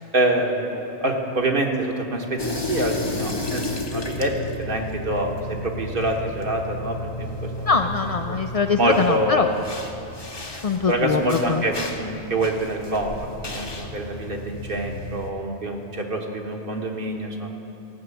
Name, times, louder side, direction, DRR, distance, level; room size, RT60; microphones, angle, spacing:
voice 1, 0.0-7.7 8.3-8.4 8.8-9.5 10.9-17.5, right 1 dB, 55° right, 2 dB, 1.3 m, -26 dB
sound 1, 2.4-15.3, left 2 dB, 25° left, 0.8 m, -33 dB
voice 2, 7.7-9.5 10.6-11.6, left 5 dB, 65° left, 6 dB, 0.3 m, -22 dB
15.5 x 6.1 x 8.3 m, 3.0 s
omnidirectional pair, 1.2 m